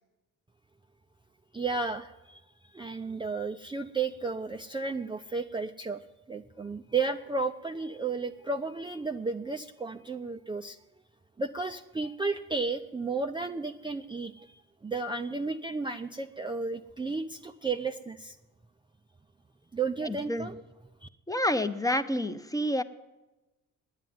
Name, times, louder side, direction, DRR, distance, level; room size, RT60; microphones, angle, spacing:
voice 1, 1.5-6.0 6.3-10.8 11.4-18.4 19.7-20.6 21.0-21.1, right 4 dB, 15° right, 5 dB, 0.6 m, -33 dB
voice 2, 20.0-20.5 21.3-22.8, left 1 dB, 10° left, 10 dB, 0.8 m, -28 dB
9.7 x 9.3 x 9.4 m, 1.1 s
hypercardioid pair, 60°, 36 cm